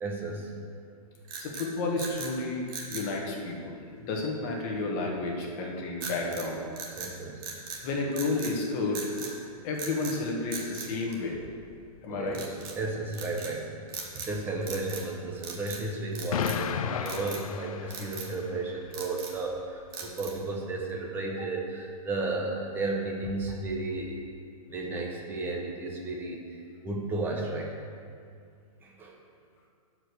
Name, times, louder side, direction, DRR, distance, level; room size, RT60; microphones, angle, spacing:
voice 1, 0.0-0.5 7.0-7.4 12.1-13.7 14.1-24.2 24.7-26.6 26.8-27.7 28.8-29.1, right 2 dB, 10° right, 0 dB, 0.9 m, -33 dB
sound 1, 1.2-2.3 2.7-3.1 6.0-6.5 6.8-7.8 8.1-8.6 8.9-9.3 9.7-10.2 10.5-11.7 12.3-12.8 13.1-13.5 13.9-14.4 14.6-15.1 15.4-15.8 16.1-16.7 17.1-17.5 17.9-18.3 18.7-19.4 19.9-20.5, right 5 dB, 35° right, 1.3 m, -40 dB
voice 2, 1.4-3.8 4.1-6.6 7.8-9.3 9.6-11.4 12.0-12.4, left 3 dB, 30° left, -1 dB, 1.5 m, -31 dB
Explosion, 16.3-18.5, left 8 dB, 65° left, 0.5 m, -33 dB
12.0 x 5.0 x 6.4 m, 2.2 s
hypercardioid pair, 165°, 19 cm